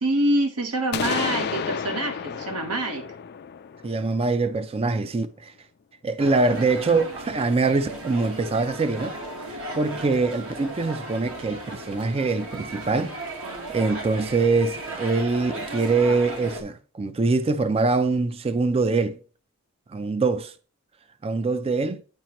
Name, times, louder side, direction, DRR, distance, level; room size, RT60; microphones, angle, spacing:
voice 1, 0.0-3.1, right 1 dB, 80° right, 1.2 m, -25 dB
sound 1, 0.9-4.7, left 7 dB, 45° left, 0.3 m, -31 dB
voice 2, 3.8-5.5 6.0-9.1 9.5-13.1 13.7-19.2 19.9-20.5 21.2-22.0, right 3 dB, 25° right, 0.4 m, -24 dB
sound 2, 6.2-16.6, right 1 dB, 60° right, 1.2 m, -36 dB
9.0 x 4.9 x 3.0 m
head